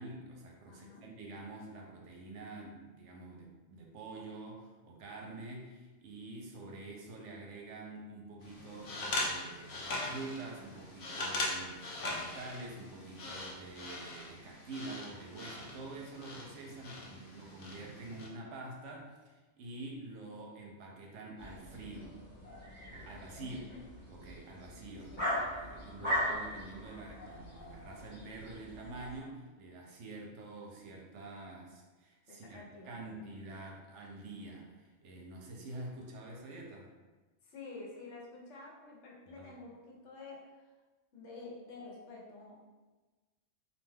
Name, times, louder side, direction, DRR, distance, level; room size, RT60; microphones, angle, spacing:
voice 1, 0.0-22.2 22.6-23.6 24.1-36.9 39.3-39.5, right 2 dB, 80° right, 0 dB, 0.9 m, -47 dB
voice 2, 0.7-1.1 23.4-23.8 25.1-25.4 32.3-33.2 37.4-40.7 41.1-42.6, left 3 dB, 75° left, -3 dB, 1.0 m, -50 dB
sound 1, 8.4-18.3, left 2 dB, 60° left, 0.6 m, -41 dB
sound 2, 21.4-29.2, equal, 40° left, 1.3 m, -40 dB
2.5 x 2.2 x 3.2 m, 1.2 s
omnidirectional pair, 1.2 m